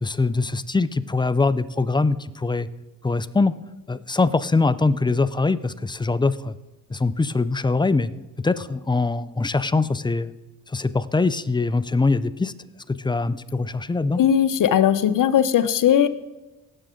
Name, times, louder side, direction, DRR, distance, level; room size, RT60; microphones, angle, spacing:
voice 1, 0.0-2.7 3.0-3.6 3.9-6.6 6.9-8.1 8.4-10.3 10.7-12.5 12.9-14.2, left 3 dB, 15° left, 15 dB, 0.5 m, -22 dB
voice 2, 14.2-16.1, left 9 dB, 60° left, 11 dB, 0.8 m, -18 dB
17.5 x 7.4 x 3.8 m, 1.1 s
supercardioid pair, 65°, 36 cm